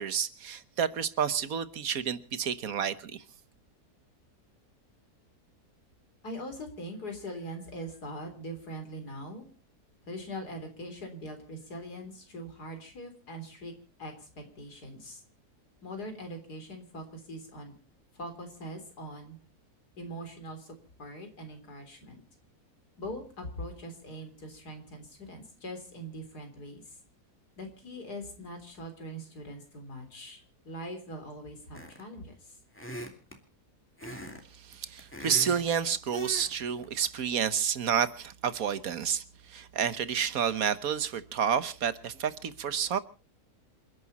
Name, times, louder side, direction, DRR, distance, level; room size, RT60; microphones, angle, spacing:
voice 1, 0.0-3.2 34.7-39.2 39.5-43.0, right 8 dB, 65° right, 1.5 m, -30 dB
voice 2, 6.2-9.5 10.1-13.7 14.0-15.2 15.8-17.7 18.1-19.4 20.0-22.2 23.0-27.0 27.6-32.6, equal, 80° left, 4.1 m, -42 dB
sound 1, 31.7-32.2 32.7-33.4 34.0-34.4 34.7-35.7 36.1-36.5 36.8-37.1, right 1 dB, 5° left, 2.7 m, -41 dB
28.5 x 11.0 x 4.2 m
omnidirectional pair, 1.7 m